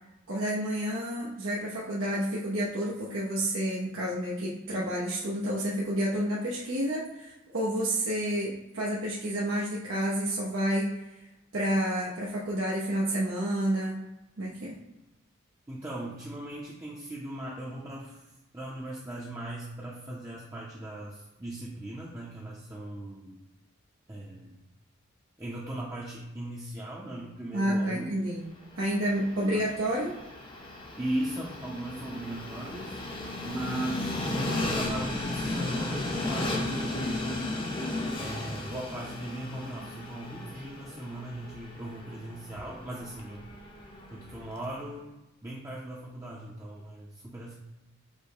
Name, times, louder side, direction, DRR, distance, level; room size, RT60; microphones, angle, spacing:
voice 1, 0.3-10.9 11.5-14.0 14.4-14.8 27.5-28.4 28.8-30.1, right 1 dB, 85° right, -7 dB, 0.8 m, -29 dB
voice 2, 15.7-23.3 24.1-24.6 25.4-28.2 29.4-29.6 31.0-33.0 33.4-37.5 38.2-43.4 44.1-45.1 45.4-47.5, right 1 dB, 15° right, -5 dB, 0.6 m, -38 dB
Train, 28.6-44.7, left 2 dB, 25° left, 0.7 m, -35 dB
5.2 x 2.1 x 4.7 m, 0.97 s
head